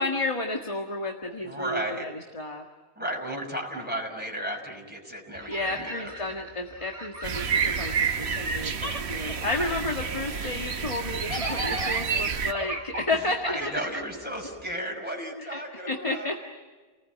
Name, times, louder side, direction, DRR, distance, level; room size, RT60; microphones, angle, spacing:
voice 1, 0.0-2.6 5.5-13.8 15.4-16.4, left 2 dB, 30° left, 2 dB, 1.8 m, -32 dB
voice 2, 1.4-2.1 3.0-6.1 11.3-11.6 13.5-16.3, right 1 dB, 10° right, -1 dB, 5.8 m, -34 dB
sound 1, 5.3-8.5 8.7-14.7, right 1 dB, 30° right, 2.0 m, -37 dB
sound 2, 7.2-12.5, right 6 dB, 75° right, 1.3 m, -29 dB
29.5 x 19.5 x 9.3 m, 1.3 s
omnidirectional pair, 1.1 m